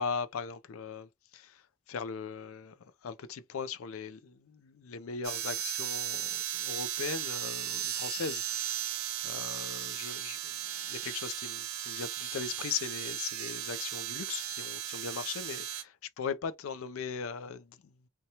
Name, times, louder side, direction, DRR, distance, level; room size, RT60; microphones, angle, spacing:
voice 1, 0.0-2.8 3.0-8.9 9.2-18.1, left 6 dB, 80° left, 0.4 m, -39 dB
sound 1, 5.2-15.8, right 11 dB, 85° right, 0.6 m, -36 dB
2.8 x 2.2 x 2.8 m
head